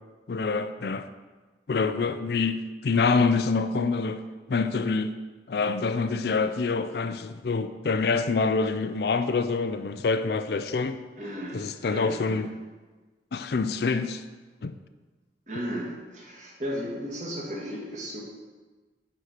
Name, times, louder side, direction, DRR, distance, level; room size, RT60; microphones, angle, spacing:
voice 1, 0.3-1.1 1.7-4.2 4.5-5.1 5.5-11.0 11.5-12.5 13.3-14.2 14.6-14.7, left 4 dB, 60° left, 10 dB, 0.4 m, -26 dB
voice 2, 11.2-12.4 15.5-18.2, equal, 40° right, -3 dB, 2.0 m, -35 dB
9.3 x 4.4 x 6.5 m, 1.3 s
head